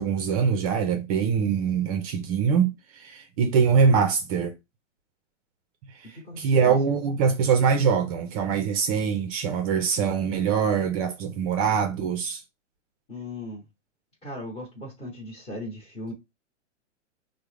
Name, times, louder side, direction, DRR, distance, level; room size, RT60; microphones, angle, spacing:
voice 1, 0.0-4.5 5.9-12.4, right 6 dB, 30° right, 0.4 m, -23 dB
voice 2, 6.0-6.7 13.1-13.6 14.2-16.1, left 1 dB, 20° left, 0.9 m, -37 dB
3.5 x 2.1 x 3.3 m
hypercardioid pair, 130°, 37 cm